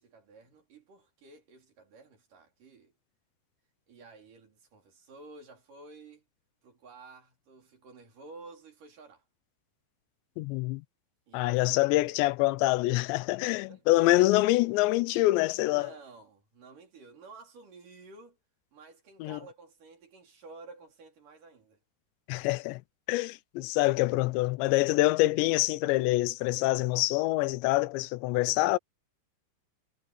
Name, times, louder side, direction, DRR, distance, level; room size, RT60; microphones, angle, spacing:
voice 1, 0.0-2.9 3.9-6.2 6.6-9.2 11.3-12.0 13.4-14.2 15.7-18.4 18.7-21.8 24.9-25.0, right 3 dB, 50° right, 5.1 m, -52 dB
voice 2, 10.4-10.8 11.3-15.9 19.2-19.4 22.3-22.8 23.1-28.8, left 19 dB, 90° left, 3.0 m, -26 dB
omnidirectional pair, 5.0 m